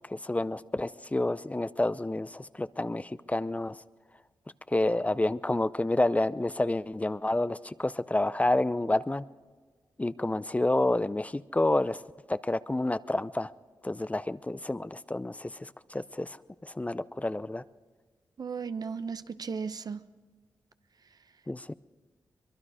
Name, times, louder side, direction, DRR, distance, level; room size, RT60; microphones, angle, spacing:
voice 1, 0.0-3.8 4.7-9.2 10.0-12.0 12.3-13.5 13.8-16.4 16.6-17.6 21.5-21.7, left 2 dB, 20° left, 15 dB, 0.6 m, -29 dB
voice 2, 18.4-20.0, right 5 dB, 60° right, 12 dB, 0.9 m, -35 dB
23.5 x 22.0 x 5.0 m, 1.4 s
cardioid pair, 60°, 8 cm